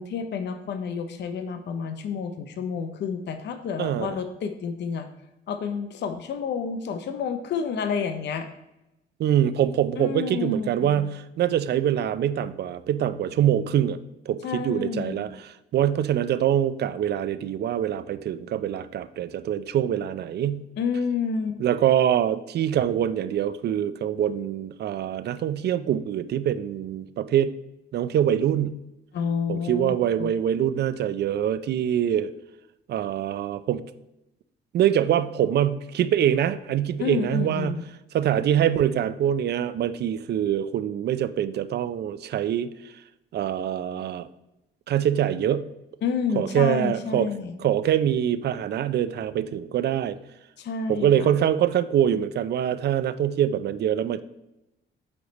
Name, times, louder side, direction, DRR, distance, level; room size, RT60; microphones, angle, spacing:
voice 1, 0.0-5.1 5.5-8.5 10.0-11.0 14.4-15.2 20.8-21.6 29.1-30.3 37.0-37.8 46.0-47.6 50.6-51.3, left 6 dB, 60° left, 8 dB, 0.6 m, -29 dB
voice 2, 3.8-4.2 9.2-14.0 14.3-20.6 21.6-27.5 27.9-28.8 29.5-32.3 32.9-33.8 34.7-37.8 38.1-42.7 43.3-44.3 44.9-45.6 46.4-47.3 47.6-50.2 50.9-54.2, right 10 dB, 55° right, 15 dB, 0.4 m, -24 dB
8.5 x 3.2 x 4.0 m, 0.91 s
cardioid pair, 90°, 20 cm